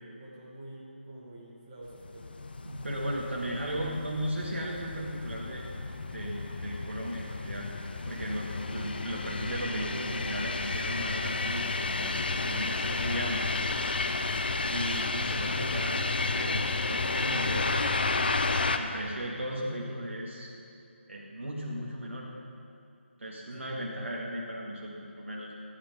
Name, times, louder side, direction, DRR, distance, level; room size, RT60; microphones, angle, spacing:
voice 1, 0.1-2.4 23.5-23.7, right 1 dB, 20° right, -5 dB, 1.8 m, -48 dB
sound 1, 2.0-18.8, left 3 dB, 50° left, 0.7 m, -32 dB
voice 2, 2.6-5.7 6.1-7.7 8.1-12.2 12.4-13.5 14.7-16.6 16.9-17.8 18.8-20.5 21.1-22.3 23.2-25.5, equal, 90° right, -4 dB, 2.0 m, -36 dB
13.0 x 10.0 x 5.4 m, 2.6 s
figure-of-eight pair, 175°, 7 cm